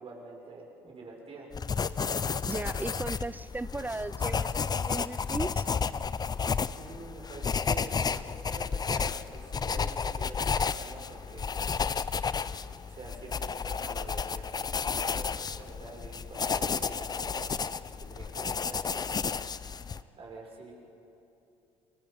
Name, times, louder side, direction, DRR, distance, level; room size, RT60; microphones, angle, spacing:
voice 1, 0.0-1.5 6.8-11.6 12.9-19.2 19.8-20.7, right 3 dB, 45° right, -1 dB, 6.3 m, -46 dB
sound 1, 1.5-20.0, left 5 dB, 30° left, 0.6 m, -32 dB
voice 2, 2.4-5.7, right 2 dB, 10° right, 18 dB, 0.6 m, -36 dB
29.5 x 21.5 x 5.3 m, 2.9 s
hypercardioid pair, 60°, 14 cm